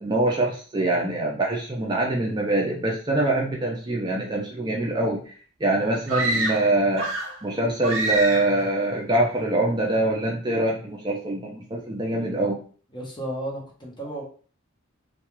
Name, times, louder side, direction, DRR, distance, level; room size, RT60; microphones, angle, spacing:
voice 1, 0.0-5.2 5.6-7.1 7.4-12.6, right 2 dB, 20° right, -2 dB, 0.4 m, -24 dB
sound 1, 6.1-7.4 7.8-8.6, right 2 dB, 75° right, 0.7 m, -27 dB
voice 2, 12.9-14.2, right 1 dB, 20° left, -3 dB, 0.7 m, -33 dB
2.3 x 2.3 x 2.9 m, 0.42 s
head